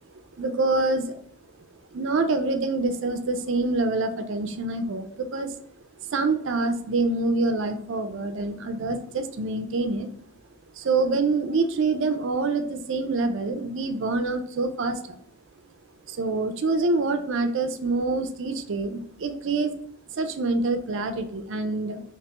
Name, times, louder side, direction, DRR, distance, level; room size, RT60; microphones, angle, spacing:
voice 1, 0.4-1.1 1.9-5.5 6.0-10.1 10.8-15.2 16.1-19.8 20.1-22.0, right 3 dB, 55° right, 8 dB, 0.4 m, -26 dB
2.9 x 2.9 x 3.3 m, 0.65 s
head